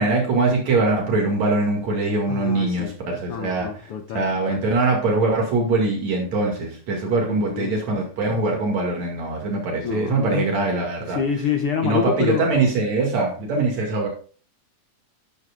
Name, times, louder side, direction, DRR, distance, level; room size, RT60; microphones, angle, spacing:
voice 1, 0.0-3.7 4.1-11.2 11.8-14.1, right 3 dB, 65° right, 3.4 m, -22 dB
voice 2, 2.3-3.0 3.3-4.6 7.2-7.7 9.8-10.5 11.1-12.5, left 7 dB, 70° left, 1.4 m, -27 dB
11.5 x 11.0 x 2.4 m
omnidirectional pair, 3.4 m